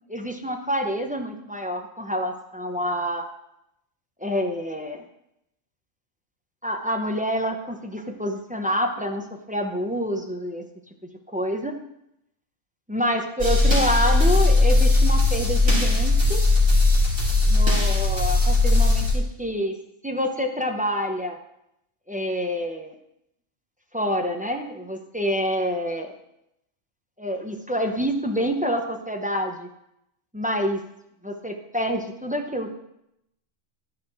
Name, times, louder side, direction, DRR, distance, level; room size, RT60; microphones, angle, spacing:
voice 1, 0.1-3.3 4.2-5.0 6.6-10.6 11.3-11.7 12.9-16.4 17.4-19.7 20.0-21.4 22.1-22.9 23.9-26.1 27.2-29.7 30.3-30.8 31.2-32.7, equal, 10° right, 3 dB, 0.6 m, -27 dB
sound 1, 13.4-19.1, left 2 dB, 45° right, 3.0 m, -18 dB
12.0 x 5.0 x 4.8 m, 0.81 s
omnidirectional pair, 1.4 m